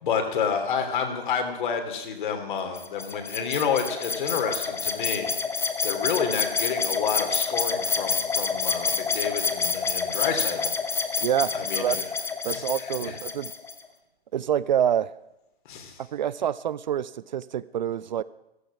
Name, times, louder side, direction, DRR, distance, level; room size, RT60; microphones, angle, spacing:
voice 1, 0.0-5.3 5.8-10.7 11.5-12.0 12.4-13.2 15.7-16.0, left 6 dB, 50° left, 6 dB, 3.0 m, -29 dB
sound 1, 2.7-13.8, left 5 dB, 10° left, 0.9 m, -28 dB
voice 2, 11.2-12.0 12.4-13.5 14.3-15.1 16.1-18.2, right 10 dB, 45° right, 19 dB, 0.5 m, -26 dB
14.5 x 14.5 x 6.1 m, 0.91 s
figure-of-eight pair, 120°, 31 cm